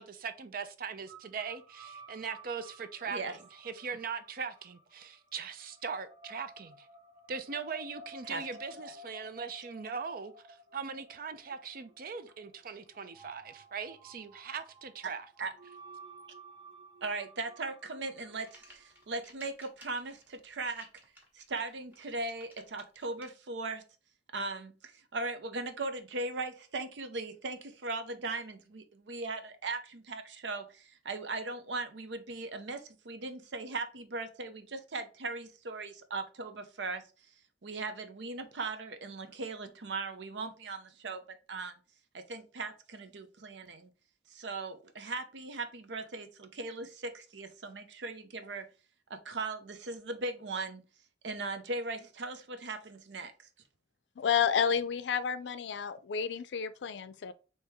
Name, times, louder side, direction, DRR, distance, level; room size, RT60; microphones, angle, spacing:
voice 1, 0.0-6.9 7.3-15.2, right 5 dB, 55° right, 0.5 m, -40 dB
sound 1, 1.1-19.2, right 1 dB, 30° right, 0.8 m, -54 dB
voice 2, 3.1-3.4 8.3-8.4 8.8-8.9 15.0-15.1 15.4-15.5 17.0-20.9 21.3-23.8 24.3-37.0 37.6-41.2 41.5-41.8 42.1-43.9 44.3-48.7 49.1-50.8 51.2-53.3, right 3 dB, 90° right, 0.7 m, -38 dB
sound 2, 18.2-23.2, equal, 10° right, 1.3 m, -57 dB
voice 3, 54.2-57.3, left 7 dB, 85° left, 0.4 m, -30 dB
4.6 x 2.9 x 3.4 m
head